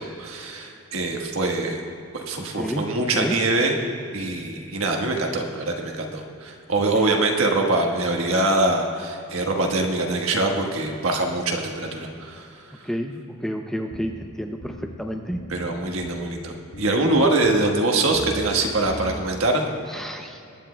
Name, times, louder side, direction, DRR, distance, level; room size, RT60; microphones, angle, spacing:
voice 1, 0.0-1.8 2.1-3.7 4.1-12.5 15.5-19.7, right 2 dB, 80° right, 2 dB, 1.3 m, -23 dB
voice 2, 2.5-3.4 6.9-7.1 12.8-15.4 19.9-20.4, equal, ahead, 3 dB, 0.5 m, -30 dB
sound 1, 13.9-14.3 14.6-15.0 15.3-15.7 16.0-16.4 16.7-17.1 17.4-17.8 18.1-18.5 18.8-19.2, left 1 dB, 70° left, 1.1 m, -38 dB
22.0 x 10.0 x 2.2 m, 2.7 s
head